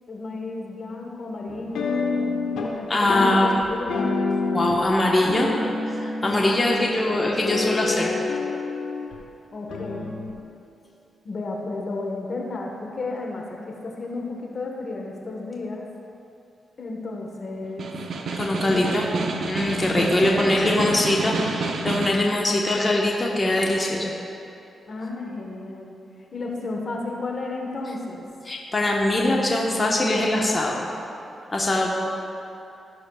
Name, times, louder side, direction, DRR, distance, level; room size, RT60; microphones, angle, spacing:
voice 1, 0.1-4.3 6.7-7.3 9.5-10.1 11.2-15.9 16.8-17.9 18.6-19.0 19.9-21.4 24.9-26.0 26.3-28.2, left 3 dB, 55° left, 0 dB, 1.3 m, -33 dB
sound 1, 1.5-2.8 3.1-4.9 5.2-6.9 7.3-9.2 9.7-10.3, left 3 dB, 85° left, 1.0 m, -27 dB
voice 2, 2.9-3.6 4.5-5.5 5.9-8.2 18.3-19.1 19.5-24.1 28.5-30.9 31.5-31.9, left 1 dB, 35° left, -2 dB, 1.2 m, -22 dB
Snare drum, 17.6-22.3, right 3 dB, 70° right, 0.7 m, -29 dB
14.5 x 6.5 x 2.4 m, 2.7 s
supercardioid pair, 50°, 0 cm